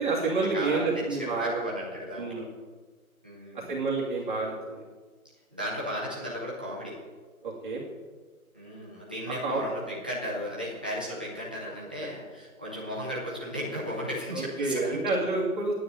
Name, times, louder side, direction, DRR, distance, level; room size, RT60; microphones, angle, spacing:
voice 1, 0.0-1.6 2.2-2.5 3.7-4.8 7.4-7.8 9.4-9.6 14.3-15.7, right 3 dB, 35° right, -4 dB, 2.4 m, -29 dB
voice 2, 0.5-2.4 3.2-3.7 5.5-7.0 8.5-15.0, equal, 5° right, -5 dB, 0.7 m, -35 dB
9.4 x 9.4 x 8.9 m, 1.4 s
hypercardioid pair, 165°, 44 cm